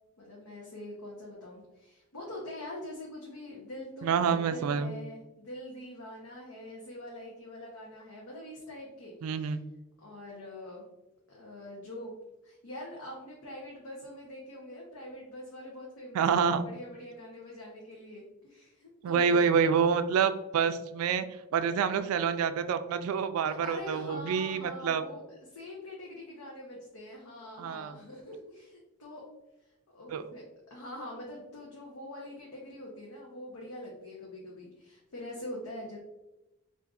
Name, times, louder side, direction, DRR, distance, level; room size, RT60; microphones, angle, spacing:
voice 1, 0.2-9.6 10.0-10.9 11.3-12.2 12.4-19.4 23.4-25.2 25.5-29.2 29.6-36.0, left 1 dB, 90° left, -3 dB, 0.7 m, -44 dB
voice 2, 4.0-5.0 9.2-9.6 16.1-16.7 19.0-21.2 21.5-25.0 27.6-28.0 30.1-30.2, right 6 dB, 75° right, 12 dB, 0.3 m, -27 dB
4.6 x 2.5 x 2.4 m, 0.99 s
head